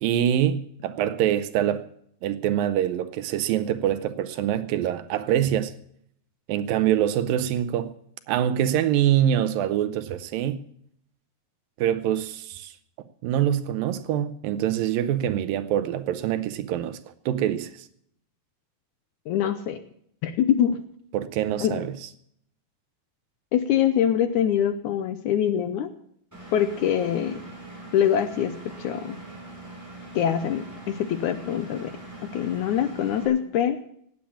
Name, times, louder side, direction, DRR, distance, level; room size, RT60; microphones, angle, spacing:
voice 1, 0.0-1.8 2.2-5.7 6.5-7.9 8.3-10.6 11.8-12.7 13.2-17.0 17.3-17.9 21.1-21.9, right 11 dB, 80° right, 2.5 m, -25 dB
voice 2, 19.3-19.8 20.2-20.8 21.6-21.8 23.5-25.9 26.5-27.4 27.9-29.2 30.1-31.9 32.3-33.8, left 9 dB, 75° left, 1.9 m, -24 dB
Engine, 26.3-33.3, right 2 dB, 5° right, 6.7 m, -42 dB
17.5 x 8.8 x 7.1 m
omnidirectional pair, 4.1 m